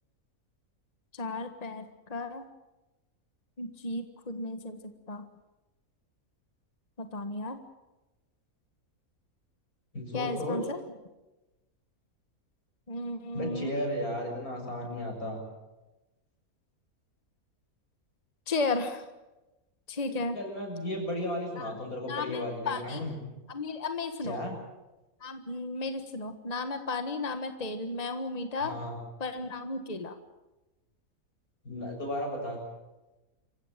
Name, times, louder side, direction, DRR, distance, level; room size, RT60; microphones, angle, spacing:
voice 1, 1.1-2.4 3.6-5.3 7.0-7.6 10.1-10.8 12.9-13.7 18.5-19.0 19.9-20.4 21.6-21.8 22.1-23.0 23.5-24.4 25.2-28.7 29.2-30.2, left 3 dB, 30° left, 8 dB, 1.6 m, -34 dB
voice 2, 9.9-10.6 13.3-15.4 20.1-23.2 24.2-24.5 28.6-29.0 31.6-32.6, left 1 dB, 80° left, 1 dB, 7.6 m, -34 dB
27.0 x 16.0 x 9.0 m, 1.1 s
omnidirectional pair, 1.5 m